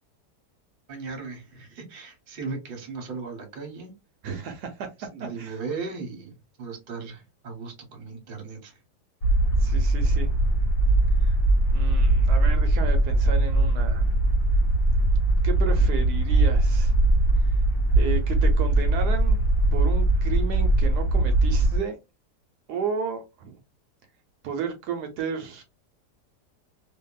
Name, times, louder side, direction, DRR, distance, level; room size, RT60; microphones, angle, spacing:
voice 1, 0.9-3.9 5.0-8.8, right 4 dB, 40° right, 1.0 m, -37 dB
voice 2, 4.2-4.9 5.4-5.5 9.6-10.3 11.2-11.4 11.7-14.2 15.4-16.9 17.4-17.5 18.0-22.0 22.7-23.6 24.4-25.6, right 6 dB, 75° right, 1.1 m, -33 dB
sound 1, 9.2-21.8, right 2 dB, 50° left, 1.1 m, -21 dB
2.7 x 2.5 x 2.2 m
omnidirectional pair, 1.8 m